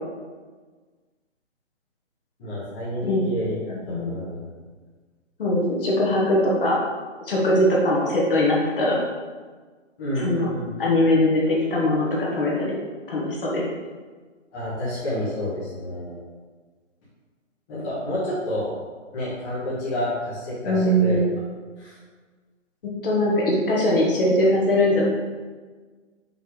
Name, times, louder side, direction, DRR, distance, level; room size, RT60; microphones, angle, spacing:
voice 1, 2.4-4.4 10.0-10.7 14.5-16.2 17.7-18.7 19.1-21.2 21.8-22.0, left 1 dB, 15° left, -10 dB, 1.2 m, -29 dB
voice 2, 3.7-4.1 5.4-6.8 7.2-9.0 10.1-10.5 10.8-12.8 13.1-13.7 20.6-21.2 23.0-25.0, left 1 dB, 45° left, -4 dB, 1.6 m, -21 dB
5.5 x 4.7 x 3.9 m, 1.4 s
hypercardioid pair, 165°, 38 cm